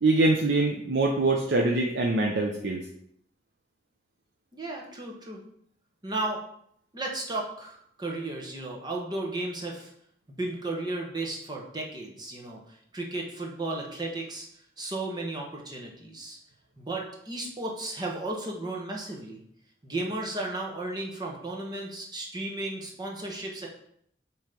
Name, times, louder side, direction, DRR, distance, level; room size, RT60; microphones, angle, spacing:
voice 1, 0.0-2.8, right 2 dB, 75° right, 1 dB, 0.7 m, -24 dB
voice 2, 4.5-5.4 6.0-6.4 6.9-9.9 10.4-14.5 14.8-16.4 16.8-19.4 19.8-23.7, right 2 dB, 25° right, 0 dB, 1.2 m, -34 dB
7.4 x 3.1 x 5.2 m, 0.70 s
head